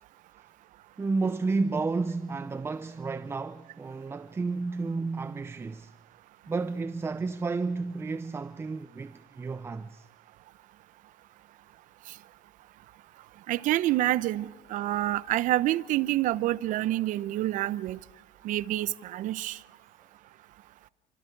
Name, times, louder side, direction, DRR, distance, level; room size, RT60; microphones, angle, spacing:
voice 1, 1.0-5.9 6.5-10.1, right 3 dB, 15° right, 0.6 m, -31 dB
voice 2, 13.5-18.0 18.4-19.6, right 15 dB, 60° right, 0.8 m, -27 dB
28.5 x 25.0 x 4.7 m
cardioid pair, 115°, 15 cm